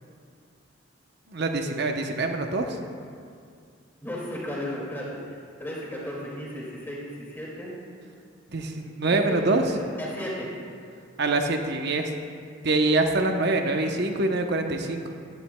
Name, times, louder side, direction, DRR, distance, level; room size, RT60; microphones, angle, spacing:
voice 1, 1.3-2.8 8.5-9.6 11.2-12.1 12.6-15.0, right 2 dB, 55° right, 4 dB, 0.8 m, -25 dB
voice 2, 4.0-7.7 9.1-10.5, equal, 10° left, -6 dB, 2.2 m, -35 dB
15.0 x 11.5 x 2.2 m, 2.3 s
head